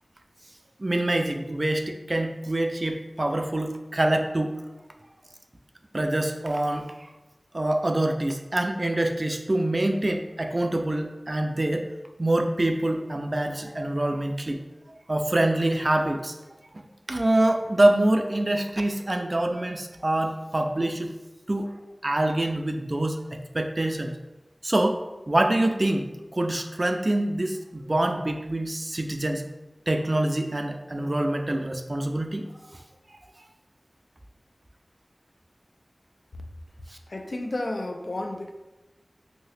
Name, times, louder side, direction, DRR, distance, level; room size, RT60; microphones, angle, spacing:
voice 1, 0.8-4.6 5.9-6.9 7.5-11.9 12.2-14.6 15.1-16.3 17.1-21.1 21.5-21.7 22.0-24.1 24.6-29.4 29.9-32.5 36.9-37.0, right 1 dB, 45° right, 5 dB, 0.3 m, -25 dB
voice 2, 37.1-38.5, left 1 dB, 75° left, 4 dB, 0.3 m, -31 dB
2.9 x 2.7 x 3.1 m, 1.1 s
wide cardioid pair, 50°, 0 cm